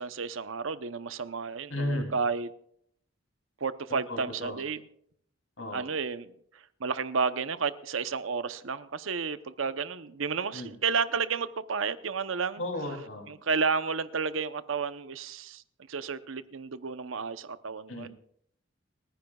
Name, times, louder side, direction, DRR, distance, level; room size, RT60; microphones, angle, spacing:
voice 1, 0.0-2.5 3.6-4.8 5.7-6.3 6.8-12.6 13.3-15.6 15.9-18.1, right 5 dB, 90° right, 0.8 m, -31 dB
voice 2, 1.7-2.1 4.1-4.6 5.6-5.8 10.5-10.7 12.6-13.3 17.9-18.1, left 1 dB, 85° left, 3.0 m, -34 dB
30.0 x 10.0 x 2.4 m
head